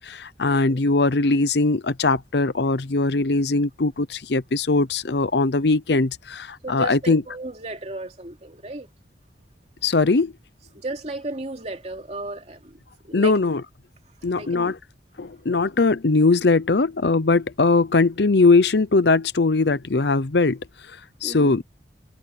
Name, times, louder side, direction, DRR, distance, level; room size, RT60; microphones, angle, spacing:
voice 1, 0.0-7.2 9.8-10.3 13.1-13.6 14.2-14.7 15.2-20.6 21.2-21.6, left 3 dB, 65° left, 0.7 m, -20 dB
voice 2, 6.6-8.9 10.7-12.8 13.0-13.4 14.2-14.8 21.2-21.5, right 2 dB, 35° right, 3.2 m, -35 dB
head